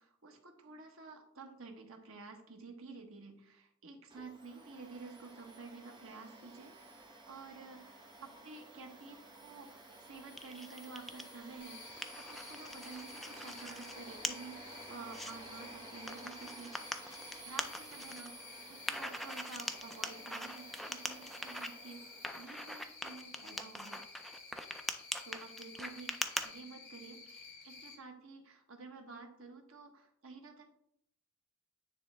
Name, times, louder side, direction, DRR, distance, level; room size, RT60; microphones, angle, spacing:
voice 1, 0.0-16.9 17.4-22.0 22.4-24.0 25.2-30.6, right 4 dB, 85° right, 4 dB, 1.1 m, -51 dB
Domestic sounds home sounds, 4.1-23.0, right 2 dB, 25° right, 1.0 m, -53 dB
sound 1, 10.4-11.3 11.7-13.9 14.2-14.3 14.8-15.3 16.1-18.3 18.9-21.7 22.2-26.5, equal, ahead, 0.3 m, -41 dB
Cricket, 11.6-28.0, left 4 dB, 30° left, 2.7 m, -53 dB
9.7 x 3.2 x 3.3 m, 0.72 s
head